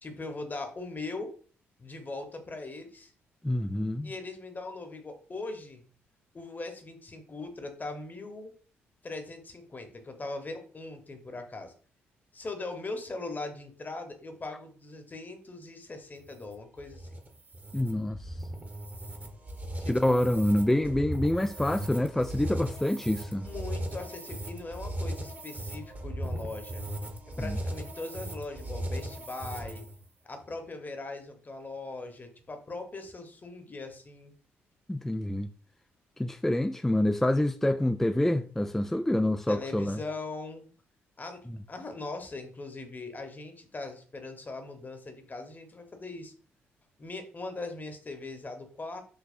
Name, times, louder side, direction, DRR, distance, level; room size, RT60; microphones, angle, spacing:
voice 1, 0.0-1.3 1.8-3.1 4.0-5.8 6.3-8.5 9.0-11.7 12.3-17.2 19.8-20.3 23.4-26.8 27.3-29.8 30.2-34.3 39.5-40.7 41.2-46.3 47.0-49.0, left 3 dB, 30° left, 1.1 m, -40 dB
voice 2, 3.4-4.1 17.7-18.4 19.9-23.5 27.4-27.6 34.9-35.5 36.2-40.0, left 1 dB, 5° left, 0.3 m, -27 dB
sound 1, 16.2-30.0, right 1 dB, 30° right, 1.1 m, -37 dB
5.3 x 3.1 x 2.6 m
figure-of-eight pair, 40°, 6 cm